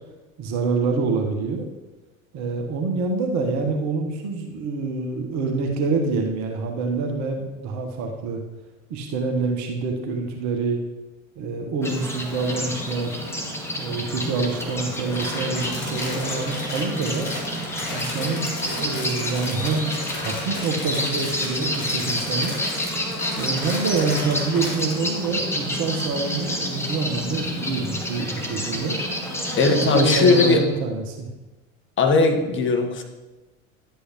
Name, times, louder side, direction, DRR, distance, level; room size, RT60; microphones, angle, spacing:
voice 1, 0.4-1.7 2.3-8.4 8.9-10.8 11.4-13.2 13.8-17.3 17.9-22.6 23.4-29.0 29.7-31.3, right 4 dB, 40° right, 2 dB, 1.3 m, -26 dB
sound 1, 11.8-30.6, equal, 5° left, 1.5 m, -29 dB
Crumpling crinkling, 14.8-24.9, left 2 dB, 55° left, 3.3 m, -34 dB
voice 2, 29.6-30.6 32.0-33.0, left 4 dB, 30° left, 4 dB, 1.4 m, -18 dB
11.0 x 8.5 x 3.1 m, 1.1 s
figure-of-eight pair, 75°, 42 cm